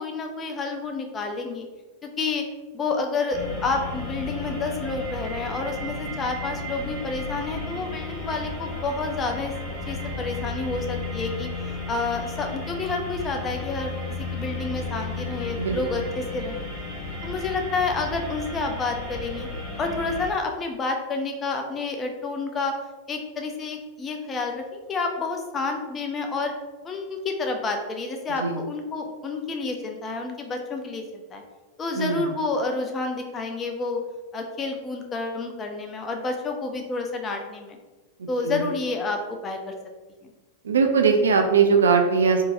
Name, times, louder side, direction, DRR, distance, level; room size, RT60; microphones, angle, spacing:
voice 1, 0.0-1.7 2.0-2.5 2.7-9.5 9.9-11.5 11.9-16.7 17.2-19.5 19.8-22.8 23.1-26.5 26.8-31.4 31.8-34.0 34.3-37.8 38.3-39.7 40.2-40.3, left 3 dB, 25° left, 3 dB, 0.5 m, -29 dB
sound 1, 3.3-20.3, left 2 dB, ahead, 1.4 m, -33 dB
voice 2, 15.6-16.0 28.4-28.6 32.0-32.3 38.4-38.7 40.6-42.4, right 5 dB, 70° right, 5 dB, 0.3 m, -20 dB
3.6 x 2.7 x 2.5 m, 1.2 s
figure-of-eight pair, 90°, 0 cm